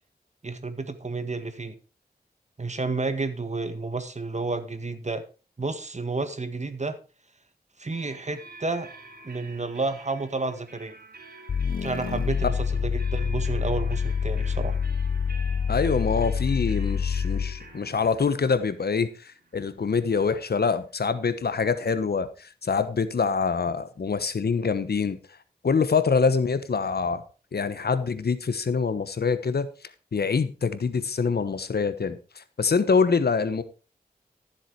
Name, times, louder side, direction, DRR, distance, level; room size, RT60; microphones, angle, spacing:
voice 1, 0.4-1.8 2.6-5.3 5.6-7.0 7.8-8.9 9.2-11.0 11.8-14.8, right 3 dB, 45° right, 1.7 m, -31 dB
sound 1, 7.9-21.5, right 3 dB, 70° right, 3.3 m, -48 dB
sound 2, 11.5-17.7, left 6 dB, 60° left, 0.4 m, -27 dB
voice 2, 15.7-25.2 25.6-27.2 27.5-29.7 30.1-33.6, left 5 dB, 80° left, 1.1 m, -25 dB
13.5 x 7.4 x 4.7 m
wide cardioid pair, 55°, 16 cm